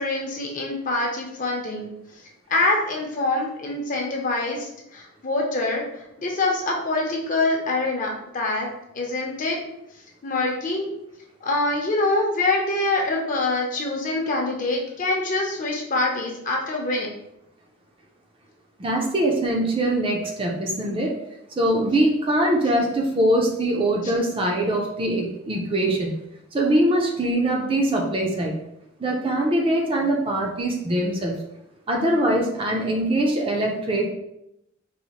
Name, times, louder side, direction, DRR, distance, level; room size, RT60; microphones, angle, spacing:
voice 1, 0.0-1.9 2.5-8.7 8.9-9.6 10.2-10.9 11.4-17.1, left 2 dB, 40° left, 0 dB, 0.6 m, -25 dB
voice 2, 18.8-21.1 21.6-26.1 26.5-28.5 29.0-31.4 31.9-34.1, right 1 dB, 25° right, 0 dB, 0.4 m, -22 dB
4.1 x 2.1 x 2.9 m, 0.81 s
head